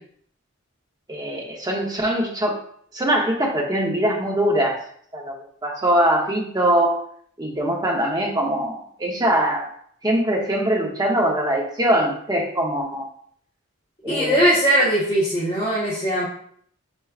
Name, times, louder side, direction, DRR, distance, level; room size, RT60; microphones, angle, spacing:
voice 1, 1.1-2.6 2.9-4.8 5.1-5.4 5.6-7.0 7.4-9.7 10.0-13.1 14.0-14.4, right 1 dB, 20° right, -1 dB, 0.8 m, -22 dB
voice 2, 14.1-16.2, right 1 dB, 25° left, -9 dB, 1.2 m, -20 dB
4.6 x 4.3 x 2.4 m, 0.62 s
head